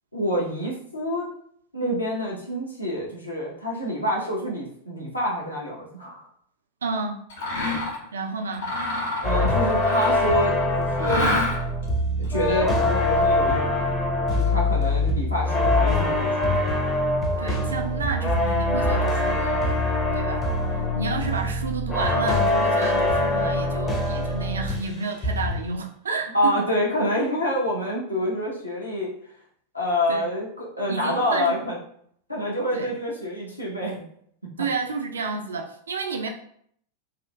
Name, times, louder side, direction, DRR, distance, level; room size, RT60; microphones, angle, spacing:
voice 1, 0.1-1.3 1.7-6.3 9.2-11.3 12.2-14.0 14.3-16.6 26.3-29.1 29.7-31.8 32.3-34.0, left 1 dB, 85° left, -4 dB, 0.8 m, -27 dB
voice 2, 6.8-7.2 8.1-8.7 17.4-19.8 20.1-20.5 21.0-26.6 30.1-30.2 30.8-31.6 32.7-32.9 34.6-36.3, right 4 dB, 70° right, 4 dB, 0.4 m, -30 dB
Mechanisms, 7.3-8.0 8.5-10.4 11.0-11.8, left 2 dB, 65° left, 1.4 m, -27 dB
sound 1, 9.2-25.0 25.2-25.7, left 2 dB, 20° left, 0.5 m, -23 dB
2.7 x 2.4 x 2.2 m, 0.64 s
figure-of-eight pair, 90°, 0 cm